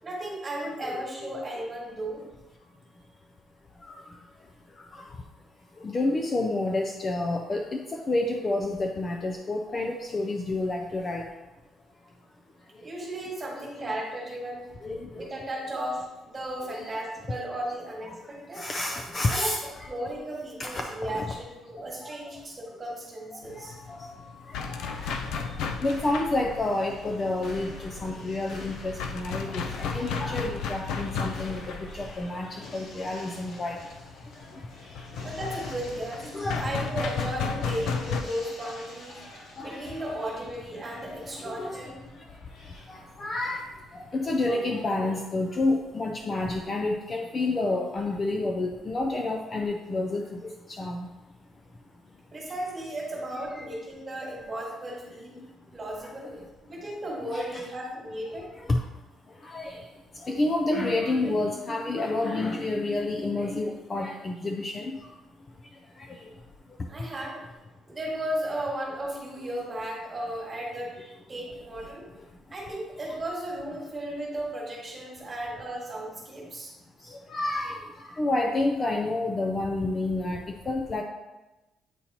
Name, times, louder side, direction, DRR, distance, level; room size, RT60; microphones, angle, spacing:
voice 1, 0.0-2.3 12.8-14.6 15.1-18.6 19.3-19.6 19.9-23.7 35.2-42.0 52.3-55.4 55.7-56.4 56.6-58.5 66.9-67.4 67.9-70.9 71.3-72.1 72.5-76.7, right 1 dB, 20° right, -3 dB, 1.6 m, -35 dB
voice 2, 5.8-11.3 13.8-13.9 14.8-15.2 16.7-16.9 18.0-18.1 18.6-19.9 20.6-21.4 22.0-22.1 23.6-25.3 25.8-33.8 36.3-36.7 39.6-39.8 41.5-41.8 42.9-43.7 43.9-50.5 50.8-51.1 53.5-53.6 57.2-57.6 58.7-58.8 59.4-59.8 60.2-65.0 77.1-77.8 78.2-80.4 80.7-81.0, left 2 dB, 20° left, 2 dB, 0.4 m, -29 dB
sound 1, 23.4-38.2, left 5 dB, 85° left, 0.5 m, -34 dB
sound 2, 24.9-44.9, left 2 dB, 65° left, 1.4 m, -45 dB
8.5 x 4.1 x 2.9 m, 1.0 s
cardioid pair, 180°, 0 cm